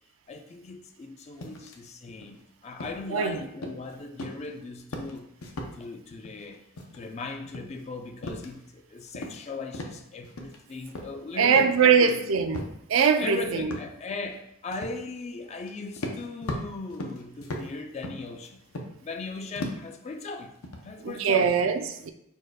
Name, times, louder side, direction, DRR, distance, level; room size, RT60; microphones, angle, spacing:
voice 1, 0.3-5.3 5.7-6.6 6.9-12.2 13.2-18.6 19.0-21.5, left 3 dB, 30° left, 0.3 m, -38 dB
sound 1, 1.4-1.8 2.1-2.4 2.8-3.2 3.6-3.9 4.2-4.5 4.8-5.8 6.1-6.5 6.8-7.2 7.4-8.8 9.1-9.5 9.7-10.6 10.8-11.9 12.5-12.8 13.2-13.3 13.7-13.9 14.7-15.0 15.6-15.7 16.0-19.2 19.6-19.9 20.4-21.2, left 1 dB, 75° left, 0.6 m, -38 dB
voice 2, 11.4-12.6 12.9-13.7 21.0-22.1, right 6 dB, 65° right, 0.4 m, -22 dB
4.3 x 2.3 x 4.7 m
head